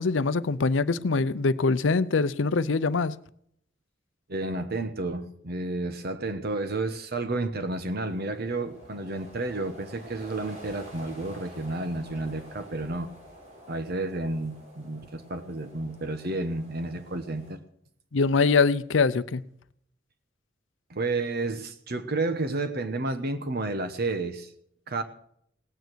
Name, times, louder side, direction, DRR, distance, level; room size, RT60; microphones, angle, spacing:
voice 1, 0.0-3.1 18.1-19.4, left 4 dB, 80° left, 0.6 m, -23 dB
voice 2, 4.3-13.1 13.7-17.6 20.9-24.5 24.9-25.0, right 2 dB, 55° right, 1.1 m, -31 dB
sound 1, 7.9-17.6, equal, 40° right, 4.9 m, -49 dB
18.0 x 9.3 x 6.3 m
head